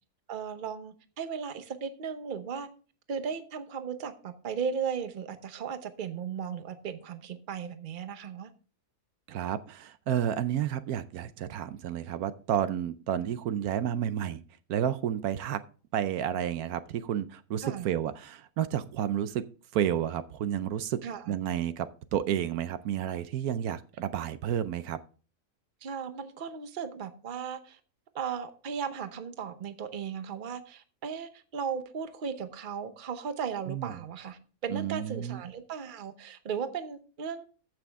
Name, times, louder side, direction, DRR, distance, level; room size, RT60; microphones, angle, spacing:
voice 1, 0.3-2.7 3.1-8.5 17.6-17.9 21.0-21.4 25.8-27.8 28.1-37.5, right 6 dB, 40° right, 10 dB, 0.9 m, -36 dB
voice 2, 9.3-14.4 14.7-15.6 15.9-19.4 19.7-21.0 21.3-25.0 33.7-34.0 34.7-35.4, right 10 dB, 80° right, 13 dB, 1.1 m, -31 dB
14.5 x 6.2 x 3.5 m, 0.38 s
omnidirectional pair, 1.6 m